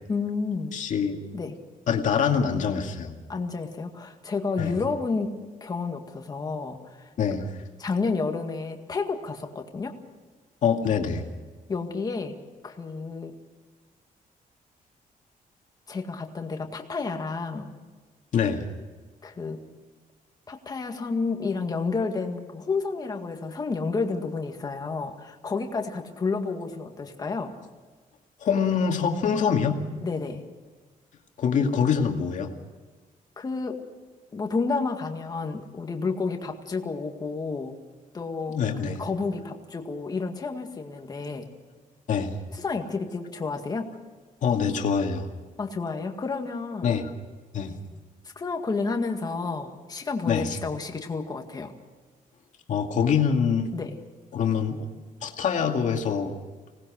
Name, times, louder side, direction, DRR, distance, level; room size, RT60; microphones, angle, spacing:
voice 1, 0.1-0.8 1.3-1.5 3.3-5.3 5.6-7.1 7.8-9.9 11.7-12.3 12.6-13.4 15.9-17.7 19.2-19.6 20.5-27.5 30.0-30.4 33.4-33.8 34.3-37.7 38.1-38.6 38.9-41.5 42.5-43.9 45.6-46.9 48.4-51.8 53.7-54.0, left 4 dB, 25° left, 4 dB, 2.0 m, -30 dB
voice 2, 0.7-1.2 1.9-3.2 4.6-4.7 7.2-7.5 10.6-11.2 18.3-18.6 28.4-29.8 31.4-32.5 38.5-39.0 42.1-42.4 44.4-45.3 46.8-47.1 47.5-47.8 50.3-50.6 52.7-53.7 54.3-54.9 55.2-56.3, left 6 dB, 60° left, 3 dB, 2.2 m, -24 dB
25.5 x 19.0 x 6.4 m, 1.4 s
wide cardioid pair, 180°, 15 cm